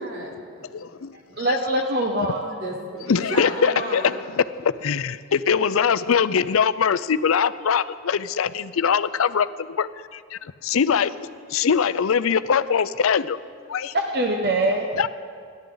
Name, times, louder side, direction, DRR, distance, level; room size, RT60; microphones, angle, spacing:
voice 1, 0.0-1.5 2.4-4.2, equal, 70° right, -2 dB, 3.3 m, -34 dB
voice 2, 0.7-1.2 1.5-1.6 3.1-4.0 4.3-13.4 13.7-13.9 14.9-15.1, left 6 dB, 80° left, 15 dB, 0.5 m, -22 dB
voice 3, 1.4-2.5 13.9-14.9, right 1 dB, 50° right, 2 dB, 1.1 m, -23 dB
29.5 x 12.0 x 3.9 m, 2.2 s
head